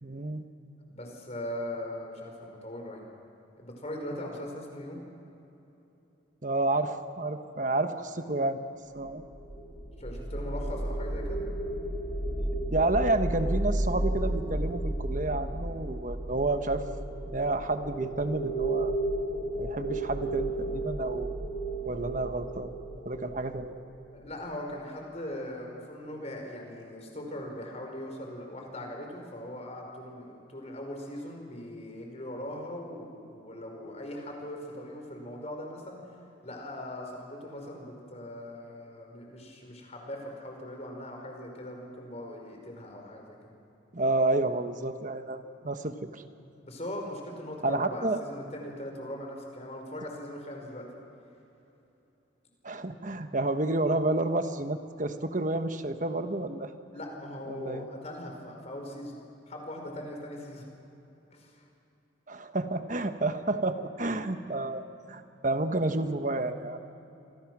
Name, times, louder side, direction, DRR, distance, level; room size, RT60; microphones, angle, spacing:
voice 1, 0.0-0.5 4.1-4.3 6.4-8.7 8.9-9.2 12.7-16.8 17.3-19.0 19.6-21.3 21.8-22.7 23.0-23.8 43.9-46.2 47.6-48.2 52.6-56.7 57.5-57.9 62.3-66.8, right 2 dB, 40° right, 8 dB, 1.3 m, -30 dB
voice 2, 0.9-3.1 3.6-5.0 10.0-11.4 15.1-15.3 24.1-36.1 36.4-43.5 46.6-50.9 56.9-59.2 59.5-60.7 61.3-61.6, left 1 dB, 35° left, 2 dB, 5.0 m, -40 dB
sound 1, 9.0-24.2, right 1 dB, 10° left, 6.5 m, -33 dB
29.0 x 24.0 x 6.2 m, 3.0 s
head